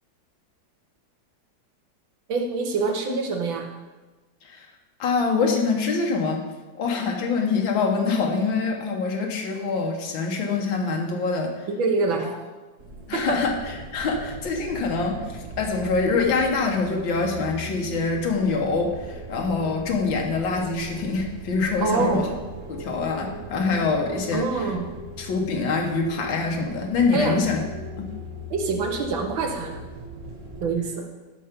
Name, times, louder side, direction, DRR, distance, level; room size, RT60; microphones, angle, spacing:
voice 1, 2.3-3.7 11.8-12.3 13.1-13.3 21.8-22.3 24.3-24.9 27.1-27.4 28.5-29.8 30.6-31.1, right 4 dB, 85° right, 3 dB, 2.0 m, -25 dB
voice 2, 5.0-6.4 6.8-11.7 13.1-13.5 13.9-22.3 22.7-24.4 25.2-27.6 28.0-28.1, left 4 dB, 80° left, 1 dB, 2.0 m, -25 dB
sound 1, 12.8-30.7, equal, 40° right, 1.9 m, -39 dB
13.0 x 5.6 x 5.2 m, 1.2 s
omnidirectional pair, 2.1 m